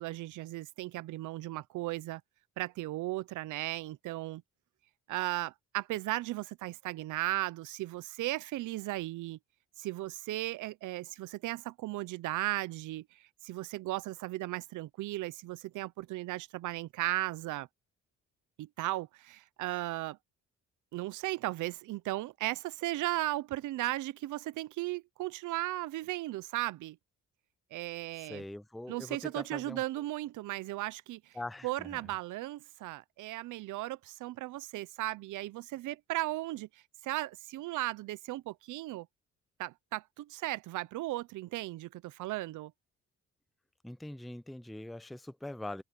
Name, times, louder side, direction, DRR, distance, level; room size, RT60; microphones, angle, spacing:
voice 1, 0.0-2.2 2.6-4.4 5.1-9.4 9.8-17.7 18.6-20.2 20.9-27.0 27.7-28.4 28.9-31.3 31.6-39.1 39.6-42.7, right 17 dB, 80° right, 0.6 m, -36 dB
voice 2, 28.2-29.8 31.3-32.1 43.8-45.8, left 1 dB, ahead, 0.5 m, -43 dB
open air
cardioid pair, 90°, 30 cm